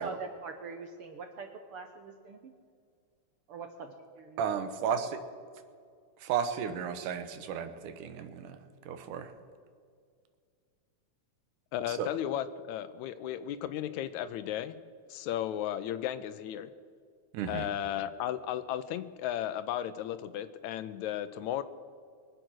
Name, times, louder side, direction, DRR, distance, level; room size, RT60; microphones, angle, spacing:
voice 1, 0.0-2.5 3.5-4.4, right 4 dB, 70° right, 6 dB, 1.3 m, -43 dB
voice 2, 4.4-5.2 6.2-8.6 8.9-9.3 11.9-12.1 17.3-17.7, right 7 dB, 90° right, 9 dB, 2.6 m, -33 dB
voice 3, 11.7-14.8 15.1-16.7 17.5-21.6, left 11 dB, 80° left, 13 dB, 1.8 m, -35 dB
23.5 x 7.9 x 6.2 m, 2.1 s
omnidirectional pair, 3.5 m